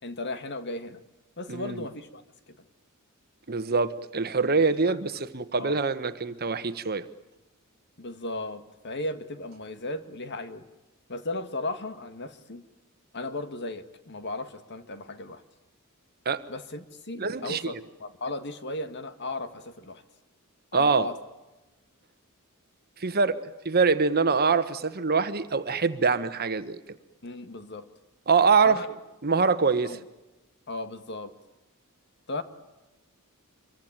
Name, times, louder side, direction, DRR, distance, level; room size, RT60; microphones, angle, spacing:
voice 1, 0.0-1.0 1.4-2.2 2.5-2.6 4.6-5.0 5.6-5.8 8.0-10.7 11.1-12.6 13.1-15.4 16.5-17.7 18.0-20.0 20.7-21.2 27.2-27.9 28.6-28.9 29.8-30.0 30.7-31.3 32.3-32.4, left 2 dB, 50° left, 10 dB, 2.0 m, -36 dB
voice 2, 1.5-1.8 3.5-7.1 16.2-16.5 17.2-17.8 20.7-21.1 23.0-26.8 28.3-28.8 29.2-30.0, right 4 dB, 45° right, 11 dB, 1.3 m, -24 dB
26.0 x 23.5 x 9.0 m, 1.0 s
head